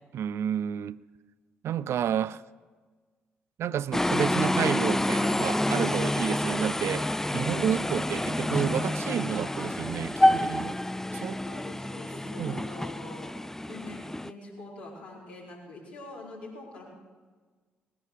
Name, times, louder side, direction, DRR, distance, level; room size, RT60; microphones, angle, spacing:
voice 1, 0.1-1.0 1.6-2.4 3.6-10.8 11.1-11.4 12.4-12.6, right 9 dB, 60° right, 0.4 m, -30 dB
sound 1, 3.9-14.3, left 1 dB, 10° left, 0.4 m, -28 dB
voice 2, 11.1-13.3 13.7-16.9, left 2 dB, 85° left, 4.0 m, -44 dB
19.0 x 11.0 x 6.3 m
hypercardioid pair, 45°, 5 cm